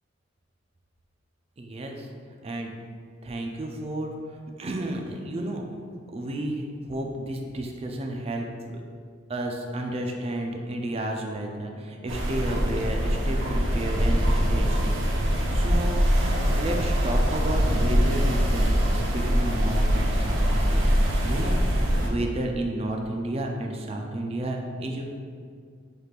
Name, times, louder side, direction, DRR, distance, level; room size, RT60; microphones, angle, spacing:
voice 1, 1.6-2.1 2.4-2.7 3.2-5.6 6.1-8.8 9.3-21.6 22.0-25.0, right 1 dB, 30° right, 2 dB, 0.4 m, -32 dB
sound 1, 12.1-22.1, equal, 85° right, 0.6 m, -23 dB
5.8 x 3.3 x 2.4 m, 2.1 s
head